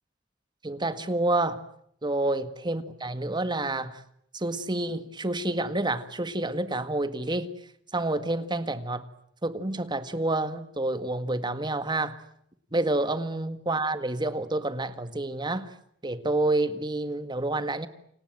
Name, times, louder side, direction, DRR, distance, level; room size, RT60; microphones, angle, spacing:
voice 1, 0.6-1.6 2.0-4.0 4.3-7.6 7.9-9.1 9.4-12.2 12.7-15.7 16.0-17.9, right 2 dB, 25° right, 1.8 m, -28 dB
29.0 x 26.0 x 7.8 m
head